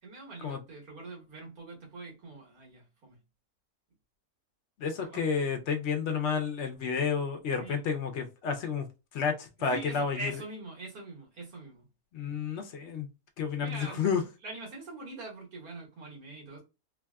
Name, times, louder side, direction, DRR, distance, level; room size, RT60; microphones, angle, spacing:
voice 1, 0.0-3.2 5.1-5.3 7.6-7.8 9.6-11.9 13.6-14.1 14.4-16.6, right 2 dB, 80° right, 1.6 m, -43 dB
voice 2, 4.8-8.9 9.1-10.3 12.1-13.1 13.4-14.2, left 6 dB, 60° left, 0.8 m, -30 dB
3.3 x 2.3 x 2.2 m
omnidirectional pair, 1.5 m